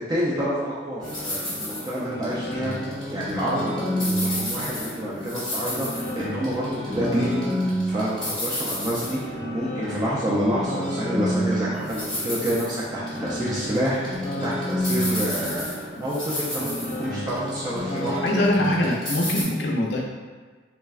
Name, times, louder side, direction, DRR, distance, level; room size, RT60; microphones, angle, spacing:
voice 1, 0.0-2.7 3.1-14.2 14.4-18.2, equal, 20° right, -7 dB, 0.3 m, -28 dB
sound 1, 1.0-19.4, equal, 5° left, 0.8 m, -29 dB
voice 2, 18.2-20.0, left 1 dB, 70° left, 0 dB, 0.4 m, -23 dB
3.4 x 2.1 x 2.3 m, 1.4 s
head